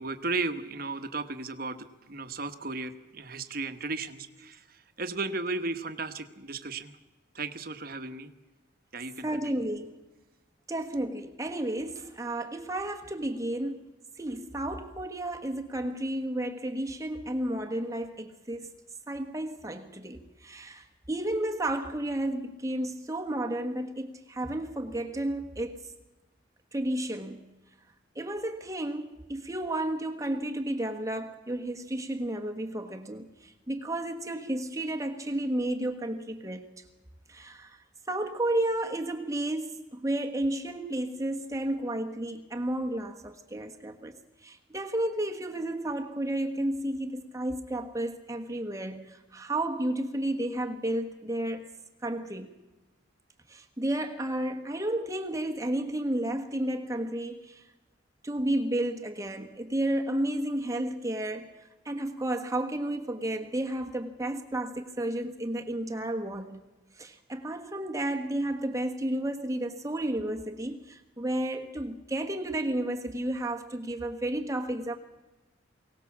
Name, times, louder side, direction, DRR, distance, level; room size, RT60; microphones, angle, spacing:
voice 1, 0.0-6.9 7.3-8.3 8.9-9.5, right 3 dB, 45° right, 1.3 m, -35 dB
voice 2, 9.2-10.0 10.7-13.8 14.2-18.7 19.1-25.9 26.7-27.5 28.1-36.8 37.3-51.7 52.0-52.6 53.5-57.6 58.2-66.6 67.0-75.0, right 1 dB, 15° right, 1.3 m, -32 dB
23.5 x 18.0 x 7.3 m
head